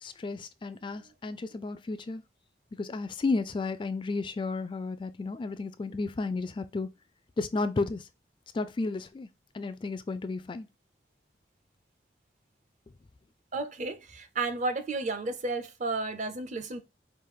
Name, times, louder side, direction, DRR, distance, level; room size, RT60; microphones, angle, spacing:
voice 1, 0.0-2.2 2.7-6.9 7.4-8.1 8.5-9.3 9.5-10.7, left 3 dB, 25° left, 0.3 m, -33 dB
voice 2, 13.5-16.8, right 3 dB, 40° right, 0.6 m, -32 dB
5.0 x 2.5 x 3.7 m
head